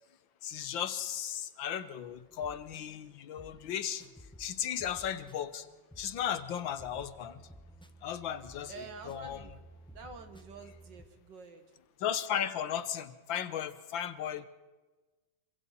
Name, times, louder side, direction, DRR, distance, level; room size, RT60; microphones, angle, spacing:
voice 1, 0.4-4.1 4.4-5.7 6.0-7.4 8.0-9.4 12.0-14.5, left 9 dB, 90° left, 13 dB, 1.8 m, -36 dB
sound 1, 2.1-11.1, equal, 5° left, 0.7 m, -55 dB
voice 2, 8.7-9.5 9.9-11.7, right 4 dB, 65° right, 6 dB, 2.6 m, -48 dB
26.5 x 25.0 x 4.3 m, 1.2 s
omnidirectional pair, 2.1 m